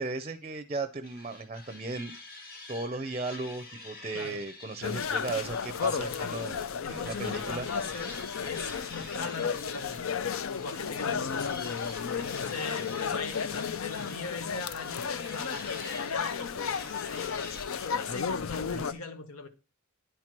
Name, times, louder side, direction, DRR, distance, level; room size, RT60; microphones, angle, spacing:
voice 1, 0.0-2.1 2.7-7.7 18.6-18.9, right 3 dB, 30° right, 0.5 m, -36 dB
sound 1, 1.0-6.7 7.1-17.9, left 3 dB, 45° left, 2.4 m, -47 dB
sound 2, 4.8-18.9, left 6 dB, 70° left, 0.5 m, -33 dB
voice 2, 6.8-10.1 10.5-11.5 12.2-17.5 17.9-19.5, left 4 dB, 90° left, 1.0 m, -39 dB
10.0 x 4.5 x 5.9 m
head